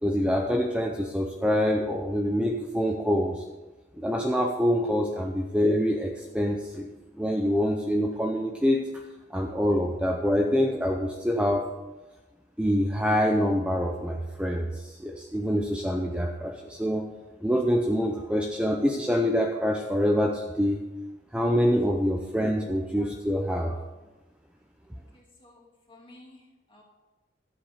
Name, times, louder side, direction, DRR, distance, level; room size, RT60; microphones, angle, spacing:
voice 1, 0.0-3.4 4.0-6.9 7.2-8.8 9.3-11.6 12.6-17.1 17.4-20.8 21.3-23.7, equal, 5° right, 1 dB, 0.6 m, -25 dB
voice 2, 25.1-26.8, left 1 dB, 25° left, -2 dB, 2.6 m, -54 dB
11.5 x 8.2 x 5.0 m, 1.1 s
head